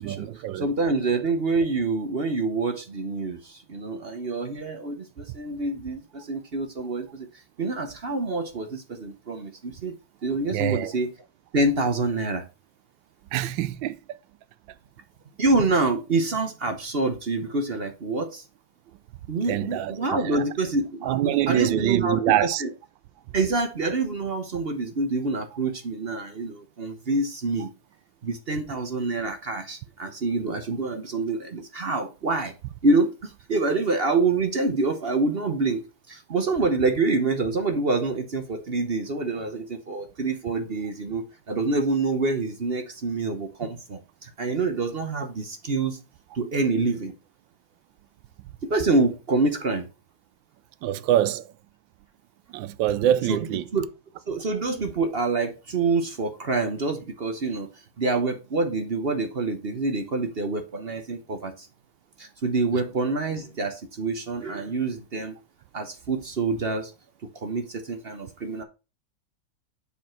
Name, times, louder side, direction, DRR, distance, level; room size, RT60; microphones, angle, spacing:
voice 1, 0.0-0.7 10.5-11.0 13.3-14.0 19.5-20.4 21.0-22.6 50.8-51.5 52.5-53.7, right 12 dB, 90° right, 1.4 m, -25 dB
voice 2, 0.6-7.3 7.6-9.9 10.2-11.1 11.5-12.4 15.4-18.4 19.3-22.7 23.3-27.7 28.2-32.5 32.8-46.0 46.3-47.1 48.6-49.9 53.3-53.4 53.7-53.9 54.3-57.7 58.0-61.7 62.2-65.3 65.7-66.9 67.4-68.6, right 3 dB, 40° right, 0.9 m, -26 dB
7.1 x 5.2 x 4.4 m
omnidirectional pair, 2.0 m